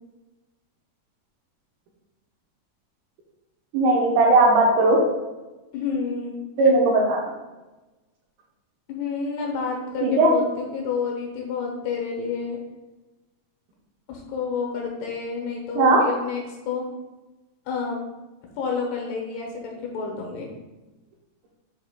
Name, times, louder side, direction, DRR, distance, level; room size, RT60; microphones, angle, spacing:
voice 1, 3.7-5.0 6.6-7.2 10.0-10.3 15.8-16.0, right 2 dB, 80° right, -2 dB, 2.4 m, -17 dB
voice 2, 5.7-6.4 8.9-12.6 14.1-16.9 17.7-18.0 18.6-20.5, left 5 dB, 75° left, 0 dB, 2.9 m, -29 dB
8.0 x 3.2 x 3.6 m, 1.1 s
omnidirectional pair, 5.0 m